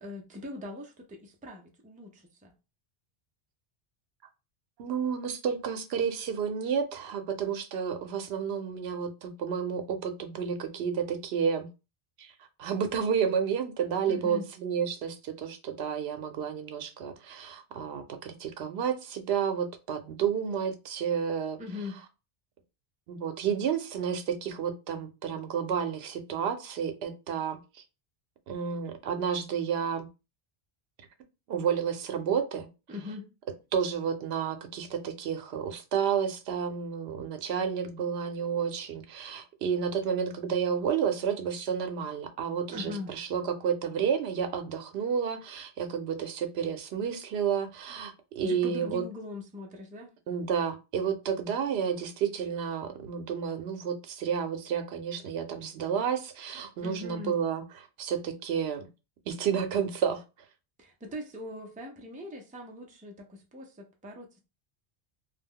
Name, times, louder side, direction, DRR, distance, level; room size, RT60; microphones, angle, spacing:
voice 1, 0.0-2.5 14.1-14.5 21.6-22.0 32.9-33.3 42.7-43.2 48.4-50.1 56.8-57.4 60.8-64.4, left 2 dB, 15° right, 0.3 m, -41 dB
voice 2, 4.8-11.7 12.2-12.3 12.6-21.6 23.1-27.6 28.5-30.1 31.5-32.7 33.7-49.0 50.3-58.9 59.3-60.2, right 7 dB, 80° right, 0.8 m, -31 dB
2.3 x 2.1 x 3.5 m
omnidirectional pair, 1.1 m